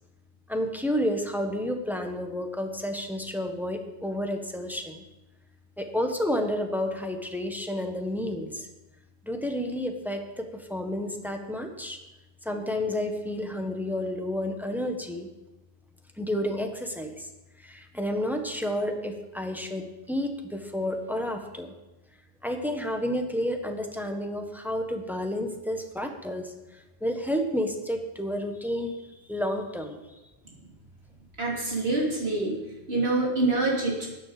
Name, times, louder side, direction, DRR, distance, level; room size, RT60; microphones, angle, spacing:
voice 1, 0.5-5.0 5.8-8.7 9.2-12.0 12.4-15.3 16.2-17.3 17.6-21.7 22.4-29.0 29.3-30.0, left 1 dB, ahead, 4 dB, 1.3 m, -30 dB
voice 2, 31.4-32.6 32.9-34.1, right 2 dB, 70° right, -3 dB, 3.4 m, -26 dB
13.0 x 9.6 x 5.1 m, 1.0 s
omnidirectional pair, 1.1 m